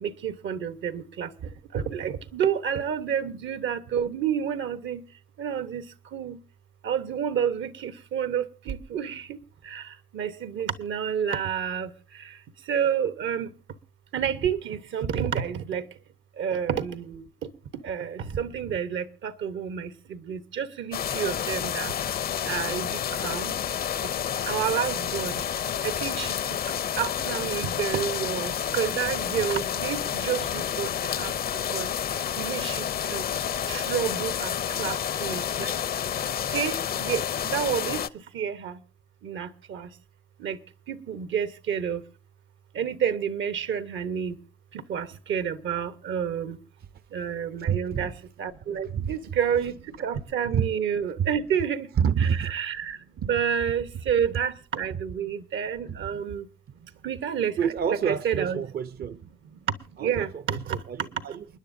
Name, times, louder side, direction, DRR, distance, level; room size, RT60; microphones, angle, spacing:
voice 1, 0.0-1.3 1.7-5.0 5.4-5.8 6.1-6.4 6.8-9.2 9.7-9.8 10.1-11.9 12.7-13.5 14.1-15.8 16.4-17.2 17.8-19.9 20.3-21.9 22.5-22.9 23.2-23.5 24.5-25.3 25.8-26.3 27.0-30.9 31.2-31.3 31.7-31.9 32.4-32.8 33.1-33.2 33.7-35.7 36.5-38.0 38.3-38.7 39.2-39.9 40.4-40.6 40.9-42.0 42.8-44.3 44.9-46.6 47.1-48.1 48.4-49.7 50.0-51.9 52.2-56.4 57.0-58.6 60.0-60.8, right 8 dB, 75° right, 1.1 m, -29 dB
sound 1, 20.9-38.1, left 9 dB, 50° left, 0.6 m, -29 dB
voice 2, 47.7-48.1 48.8-49.1 50.5-50.7 51.2-51.3 52.0-52.5 53.2-53.3 54.9-55.0 55.9-56.2 57.6-59.2 60.0-60.6 60.9-61.6, right 7 dB, 50° right, 0.6 m, -28 dB
29.0 x 10.0 x 2.6 m
cardioid pair, 90°, 20 cm